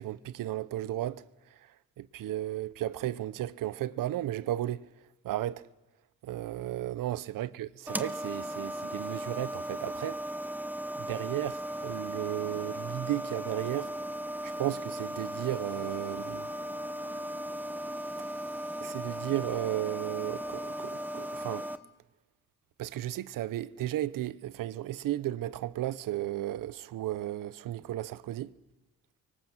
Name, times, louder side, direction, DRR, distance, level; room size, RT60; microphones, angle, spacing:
voice 1, 0.0-1.7 2.0-4.9 5.2-5.6 6.2-10.2 10.9-13.9 14.4-16.5 18.8-21.7 22.8-28.5, right 13 dB, 85° right, 0.9 m, -34 dB
sound 1, 7.9-21.8, equal, 5° right, 0.9 m, -37 dB
29.5 x 24.0 x 7.4 m
cardioid pair, 115°, 32 cm